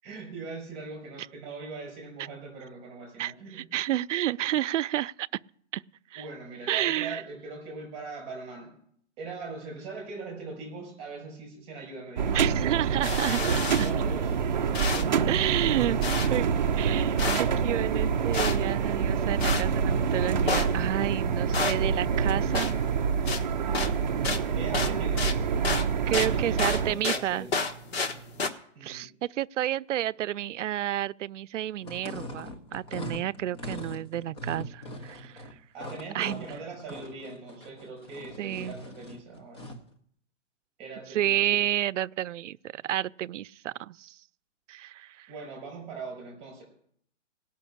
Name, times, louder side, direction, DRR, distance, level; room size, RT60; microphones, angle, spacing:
voice 1, 0.0-3.6 6.1-8.8 9.2-12.8 13.4-14.3 14.7-16.1 24.4-25.5 26.0-27.5 28.8-29.1 35.7-39.7 40.8-41.6 45.3-46.6, right 4 dB, 15° right, 5.6 m, -41 dB
voice 2, 3.2-5.3 5.7-5.8 6.1-6.2 6.7-7.2 12.3-13.4 15.3-16.0 16.3-16.5 16.8-22.8 26.1-27.5 28.8-35.4 36.1-36.5 38.4-38.7 41.1-44.2 44.7-45.3, right 13 dB, 85° right, 0.5 m, -30 dB
sound 1, 12.2-26.9, right 6 dB, 40° right, 0.5 m, -27 dB
sound 2, 13.0-28.5, left 3 dB, 60° left, 1.4 m, -34 dB
sound 3, 31.8-39.9, left 1 dB, 25° left, 0.9 m, -41 dB
17.5 x 6.0 x 8.6 m
hypercardioid pair, 175°, 36 cm